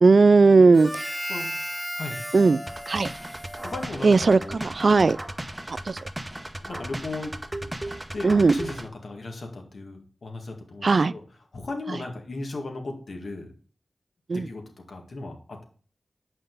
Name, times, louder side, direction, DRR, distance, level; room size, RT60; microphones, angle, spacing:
voice 1, 0.0-0.9 2.3-2.6 2.9-3.1 4.0-5.2 5.9-6.0 8.2-8.5 10.8-11.1 14.3-14.5, right 4 dB, 65° right, 0.3 m, -17 dB
Harmonica, 0.7-4.5, equal, ahead, 1.6 m, -35 dB
voice 2, 1.3-1.7 2.0-2.2 3.6-4.1 4.4-4.6 6.6-7.4 8.1-10.8 11.1-11.2 11.5-13.5 14.3-14.6 14.9-15.6, left 2 dB, 70° left, 2.0 m, -36 dB
sound 1, 2.7-8.9, right 1 dB, 15° right, 0.9 m, -36 dB
7.2 x 5.5 x 3.9 m
cardioid pair, 45°, 0 cm